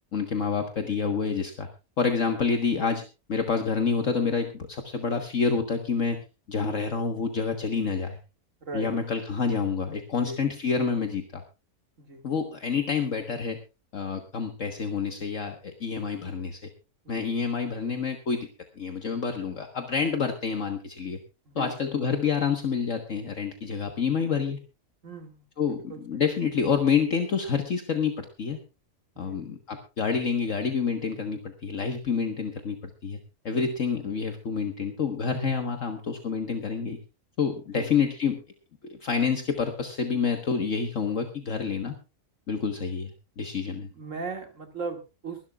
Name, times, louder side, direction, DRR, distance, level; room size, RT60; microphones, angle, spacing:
voice 1, 0.1-1.7 2.0-3.0 3.3-6.2 6.5-8.2 8.7-11.4 12.2-13.6 13.9-16.7 17.1-18.5 18.8-21.2 21.6-24.6 25.6-28.6 29.2-33.2 33.5-37.0 37.4-38.4 38.8-42.0 42.5-43.9, left 5 dB, 55° left, 5 dB, 1.7 m, -28 dB
voice 2, 8.6-8.9 10.2-10.4 12.0-12.3 17.0-17.3 21.5-22.1 25.0-26.2 29.2-29.4 33.5-33.7 37.7-37.9 43.9-45.4, right 4 dB, 55° right, 5 dB, 2.6 m, -38 dB
24.0 x 12.0 x 2.4 m, 0.29 s
omnidirectional pair, 1.6 m